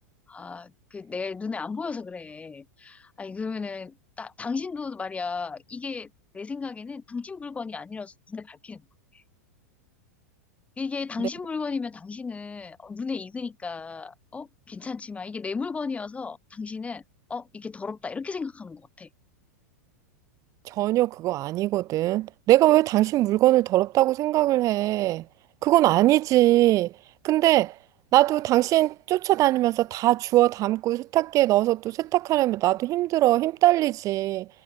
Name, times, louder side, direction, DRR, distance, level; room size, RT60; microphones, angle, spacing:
voice 1, 0.3-8.8 9.1-9.2 10.8-17.0 17.3-19.1, left 4 dB, 15° left, 1.0 m, -34 dB
voice 2, 20.7-25.2 25.6-26.9 27.2-27.7 28.1-34.5, right 16 dB, 35° right, 0.9 m, -21 dB
hypercardioid pair, 105°, 9 cm